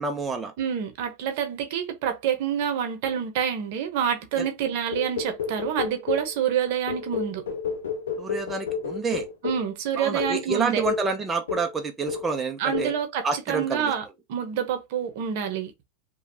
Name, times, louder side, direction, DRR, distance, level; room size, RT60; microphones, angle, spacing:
voice 1, 0.0-0.5 4.4-4.5 8.2-9.3 10.0-12.9 13.2-13.9, right 4 dB, 20° right, 0.6 m, -28 dB
voice 2, 0.6-7.4 9.4-10.8 12.6-15.7, right 8 dB, 65° right, 0.8 m, -27 dB
sound 1, 4.9-6.3 6.9-9.7 10.2-10.4 10.8-11.1 11.5-11.8 12.1-12.4 12.7-13.0, left 6 dB, 85° left, 0.7 m, -31 dB
3.0 x 2.3 x 2.7 m
hypercardioid pair, 100°, 0 cm